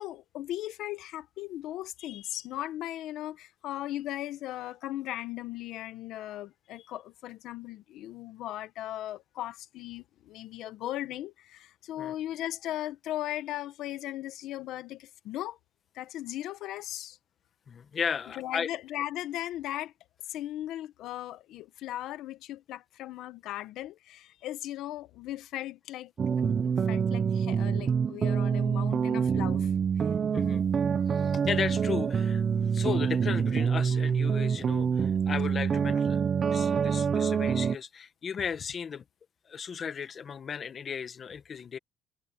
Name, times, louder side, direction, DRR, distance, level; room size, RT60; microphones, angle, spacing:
voice 1, 0.0-15.6 15.9-17.2 18.3-19.9 20.3-26.1 26.4-29.7 30.0-30.1, left 14 dB, 75° left, 1.2 m, -38 dB
voice 2, 17.7-18.7 30.3-30.6 31.0-36.2 36.4-39.0 39.4-41.8, left 7 dB, 40° left, 1.2 m, -35 dB
sound 1, 26.2-37.7, right 6 dB, 35° right, 0.6 m, -26 dB
cardioid pair, 130°, 0 cm